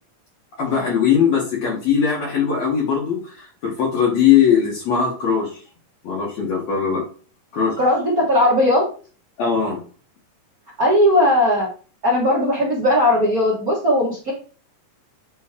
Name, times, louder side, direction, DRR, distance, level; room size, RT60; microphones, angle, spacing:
voice 1, 0.6-5.6 6.0-7.0 7.5-7.8 9.4-9.8, left 7 dB, 60° left, -3 dB, 2.1 m, -20 dB
voice 2, 7.8-8.8 10.8-11.7 12.0-14.3, left 1 dB, 45° right, -6 dB, 1.2 m, -17 dB
8.7 x 3.1 x 3.6 m, 0.39 s
omnidirectional pair, 3.9 m